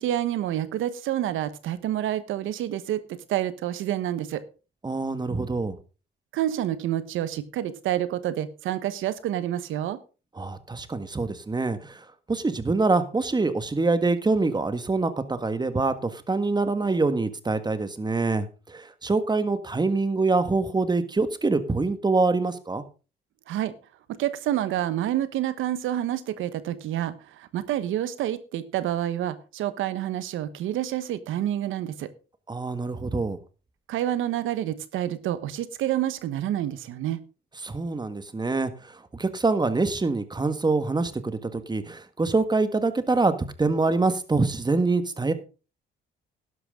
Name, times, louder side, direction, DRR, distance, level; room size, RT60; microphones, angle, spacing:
voice 1, 0.0-4.4 6.3-10.0 23.5-23.7 24.1-32.1 33.9-37.2, right 12 dB, 85° right, 1.2 m, -28 dB
voice 2, 4.8-5.8 10.4-22.8 32.5-33.4 37.6-43.3 43.6-45.3, right 3 dB, 20° right, 1.6 m, -25 dB
12.0 x 11.0 x 3.8 m
cardioid pair, 90°, 20 cm